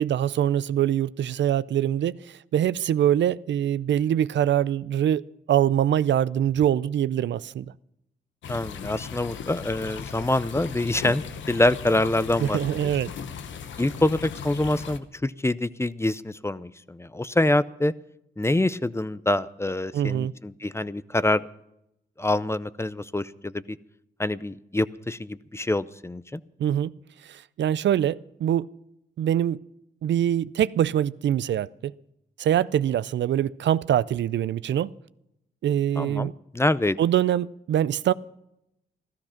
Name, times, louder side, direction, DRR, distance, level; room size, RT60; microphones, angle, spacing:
voice 1, 0.0-5.2 5.5-7.7 12.4-13.1 19.9-20.3 26.6-26.9 27.2-28.7 29.2-29.6 30.0-31.9 32.4-34.9 35.6-36.3 37.0-38.1, right 10 dB, 75° right, 0.4 m, -24 dB
sound 1, 8.4-15.0, left 7 dB, 85° left, 0.9 m, -37 dB
voice 2, 8.5-12.9 13.8-17.9 18.4-21.4 22.2-23.8 24.2-26.4 36.0-37.0, left 1 dB, 15° left, 0.6 m, -26 dB
14.5 x 13.5 x 5.8 m
cardioid pair, 55°, 19 cm